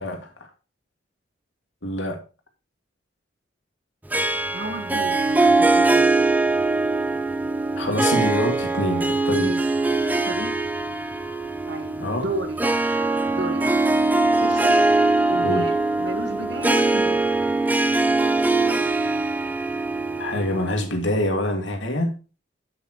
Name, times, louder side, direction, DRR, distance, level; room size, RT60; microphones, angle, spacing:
voice 1, 0.0-0.5 1.8-2.2 7.8-9.5 12.0-12.3 15.4-15.7 20.2-22.1, left 1 dB, 80° left, 2.4 m, -25 dB
Harp, 4.1-20.9, right 2 dB, 10° right, 0.7 m, -22 dB
voice 2, 4.5-6.1 9.4-9.6 10.2-10.5 11.7-12.0 12.2-12.6 13.3-13.8 14.4-14.8 15.3-17.3, right 1 dB, 60° right, 1.8 m, -32 dB
9.0 x 8.5 x 3.1 m
head